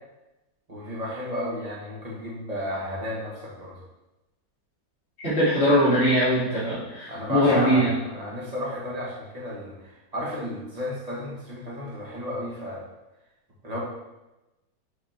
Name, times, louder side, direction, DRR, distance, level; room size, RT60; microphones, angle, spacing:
voice 1, 0.7-3.8 7.1-12.8 13.6-13.8, equal, 20° right, -6 dB, 1.6 m, -33 dB
voice 2, 5.2-7.9, equal, 35° left, -12 dB, 2.4 m, -21 dB
6.1 x 3.9 x 4.4 m, 1.0 s
omnidirectional pair, 2.0 m